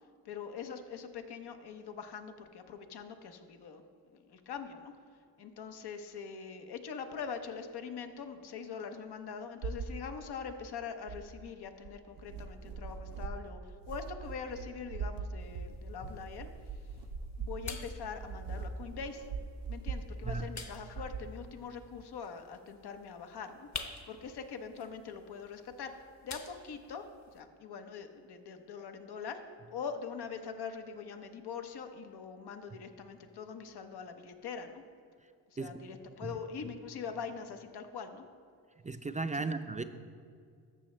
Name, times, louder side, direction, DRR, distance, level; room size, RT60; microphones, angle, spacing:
voice 1, 0.2-3.8 4.1-4.9 5.4-16.5 17.4-19.3 19.7-23.7 24.1-29.4 29.7-34.8 35.5-38.3 39.3-39.5, left 6 dB, 75° left, 6 dB, 0.9 m, -43 dB
sound 1, 9.6-10.0 11.1-11.4 11.8-20.5 21.0-21.3, right 4 dB, 90° right, 0.6 m, -41 dB
sound 2, 15.4-27.4, left 4 dB, 45° left, 1.1 m, -50 dB
voice 2, 38.8-39.8, right 3 dB, 20° right, 9 dB, 0.4 m, -36 dB
13.5 x 6.4 x 3.2 m, 2.2 s
cardioid pair, 55°, 39 cm